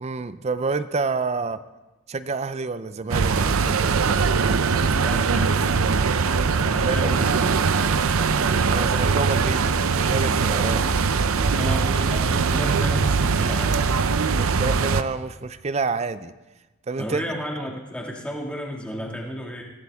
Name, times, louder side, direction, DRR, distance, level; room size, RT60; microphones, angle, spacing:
voice 1, 0.0-1.6 2.1-4.2 6.6-7.1 8.7-10.8 14.3-16.3 16.9-17.2, right 4 dB, 30° right, 14 dB, 0.4 m, -28 dB
sound 1, 3.1-15.0, right 5 dB, 75° right, 0.6 m, -21 dB
voice 2, 4.9-5.9 6.7-7.5 11.5-13.8 17.0-19.6, equal, 5° left, -1 dB, 2.1 m, -32 dB
21.5 x 15.5 x 3.6 m, 1.1 s
head